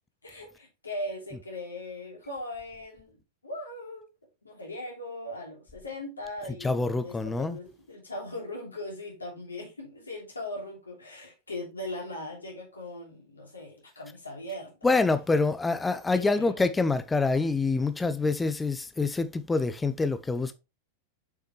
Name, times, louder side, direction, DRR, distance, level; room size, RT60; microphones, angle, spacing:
voice 1, 0.2-4.1 4.4-14.8 16.1-16.6, left 1 dB, 80° left, 3.0 m, -39 dB
voice 2, 6.6-7.6 14.8-20.5, left 3 dB, 10° left, 0.7 m, -26 dB
7.1 x 5.7 x 3.2 m
figure-of-eight pair, 90°, 0 cm